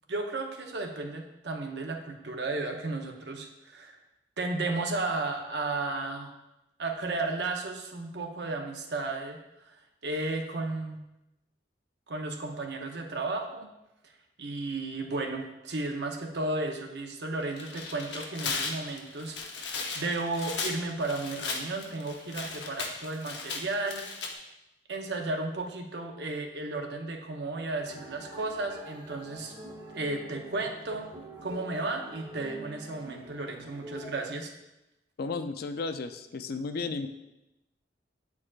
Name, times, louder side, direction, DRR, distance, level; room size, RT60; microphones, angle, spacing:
voice 1, 0.1-4.0 4.4-6.3 6.8-9.4 9.7-9.8 10.0-11.0 12.1-13.7 14.4-24.3 24.9-29.5 29.9-31.1 31.4-34.5, right 2 dB, 70° right, 3 dB, 0.8 m, -34 dB
Tearing, 17.4-24.3, left 4 dB, 75° left, 0.8 m, -36 dB
sound 1, 27.8-34.2, right 1 dB, 25° right, 1.1 m, -46 dB
voice 2, 35.2-37.1, left 4 dB, 60° left, 8 dB, 0.4 m, -33 dB
8.6 x 4.7 x 2.4 m, 0.91 s
head